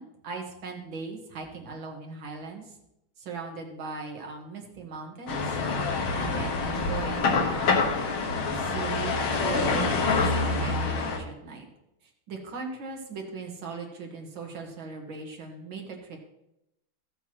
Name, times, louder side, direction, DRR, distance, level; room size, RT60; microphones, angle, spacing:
voice 1, 0.0-2.7 3.2-5.5 6.1-8.0 8.5-11.7 12.3-16.2, right 4 dB, 70° right, 1 dB, 2.2 m, -38 dB
sound 1, 5.3-11.2, left 4 dB, 75° left, 2.2 m, -26 dB
14.0 x 8.0 x 3.0 m, 0.84 s
omnidirectional pair, 2.3 m